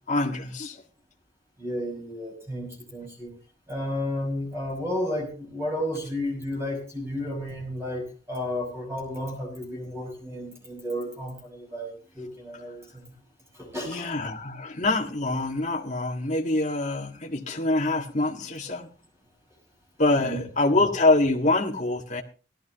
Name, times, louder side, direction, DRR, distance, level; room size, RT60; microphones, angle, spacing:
voice 1, 0.1-0.8 13.8-18.9 20.0-22.2, left 2 dB, 40° left, 1.8 m, -25 dB
voice 2, 1.6-3.3 3.7-13.1 13.5-14.1 20.2-20.4, left 1 dB, 15° right, 5.7 m, -32 dB
18.0 x 13.5 x 3.0 m
head